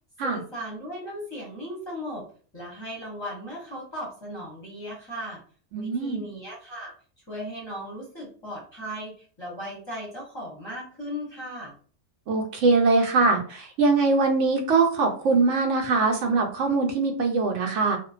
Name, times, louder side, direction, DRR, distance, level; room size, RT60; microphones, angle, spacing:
voice 1, 0.2-2.2 2.5-5.4 5.7-6.9 7.3-11.8, equal, 25° left, -6 dB, 0.8 m, -37 dB
voice 2, 5.7-6.2 12.3-18.0, right 3 dB, 75° right, 3 dB, 0.9 m, -22 dB
2.5 x 2.1 x 2.4 m, 0.42 s
omnidirectional pair, 1.3 m